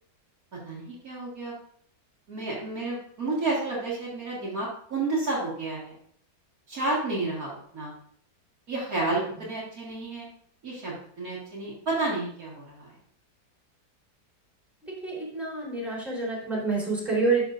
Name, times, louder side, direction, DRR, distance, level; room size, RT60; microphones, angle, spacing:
voice 1, 0.6-1.5 2.3-6.0 6.7-7.9 8.7-10.3 10.6-12.9, right 2 dB, 55° right, -5 dB, 2.3 m, -31 dB
voice 2, 15.0-17.5, right 3 dB, ahead, -5 dB, 3.5 m, -27 dB
11.5 x 6.4 x 2.5 m, 0.62 s
omnidirectional pair, 1.9 m